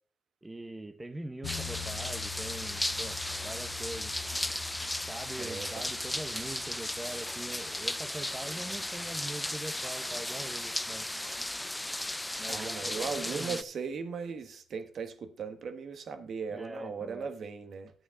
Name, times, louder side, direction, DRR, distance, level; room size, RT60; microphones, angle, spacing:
voice 1, 0.4-3.2 3.4-4.1 5.1-11.1 12.4-13.6 16.5-17.3, right 1 dB, 15° right, 0.9 m, -42 dB
sound 1, 1.4-11.5, left 11 dB, 80° left, 0.6 m, -48 dB
sound 2, 1.4-13.6, left 1 dB, 10° left, 0.4 m, -35 dB
voice 2, 5.4-5.8 6.4-6.8 12.5-17.9, right 5 dB, 55° right, 1.5 m, -38 dB
11.5 x 8.4 x 3.8 m
cardioid pair, 85°, 0 cm